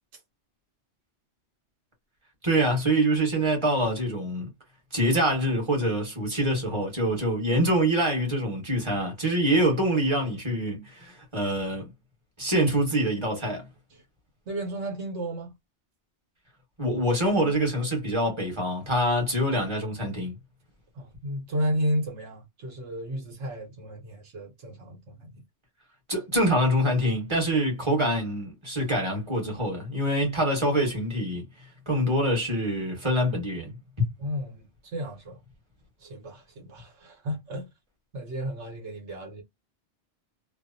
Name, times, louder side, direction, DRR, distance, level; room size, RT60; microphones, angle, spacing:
voice 1, 2.4-4.5 4.9-11.9 12.4-13.7 16.8-20.3 26.1-31.4 31.9-33.7, right 1 dB, 25° right, 1.2 m, -25 dB
voice 2, 14.5-15.5 20.9-25.3 34.2-35.4 36.0-37.7 38.1-39.4, equal, 85° right, 1.2 m, -33 dB
2.6 x 2.0 x 2.5 m
omnidirectional pair, 1.2 m